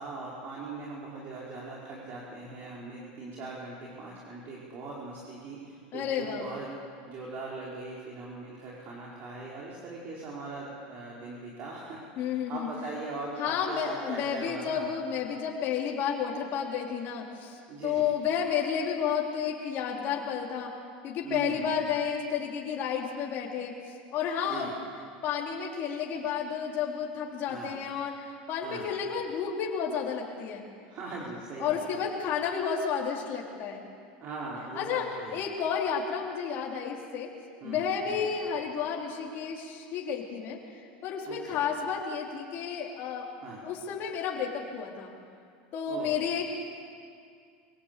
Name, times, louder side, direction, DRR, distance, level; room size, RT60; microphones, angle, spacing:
voice 1, 0.0-6.7 7.1-14.9 17.7-18.1 21.2-21.8 24.5-24.7 27.5-27.7 28.6-28.9 30.9-32.0 34.2-35.4 37.6-38.2 41.2-41.6 43.4-43.6 45.9-46.1, right 3 dB, 45° right, -4 dB, 4.7 m, -40 dB
voice 2, 5.9-6.5 12.2-12.7 13.4-20.7 21.0-23.7 24.1-24.7 25.2-30.6 31.6-33.8 34.8-37.3 37.6-40.6 41.0-43.3 43.6-45.1 45.7-46.5, left 7 dB, 45° left, -2 dB, 3.6 m, -31 dB
24.0 x 18.0 x 8.3 m, 2.2 s
supercardioid pair, 120°, 5 cm